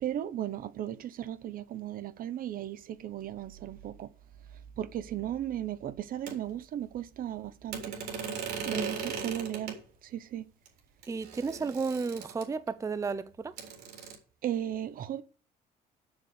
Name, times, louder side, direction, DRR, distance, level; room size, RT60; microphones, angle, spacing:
voice 1, 0.0-4.1 4.8-8.0 8.6-9.8 10.1-10.5 14.4-15.2, right 11 dB, 55° right, 0.8 m, -36 dB
sound 1, 6.3-6.4 7.7-9.8 10.7-10.8 11.0-12.7 13.6-14.2, right 6 dB, 80° right, 3.4 m, -38 dB
voice 2, 8.7-9.1 11.1-13.6, right 4 dB, 20° right, 0.5 m, -33 dB
7.4 x 6.7 x 8.1 m
cardioid pair, 110°, 17 cm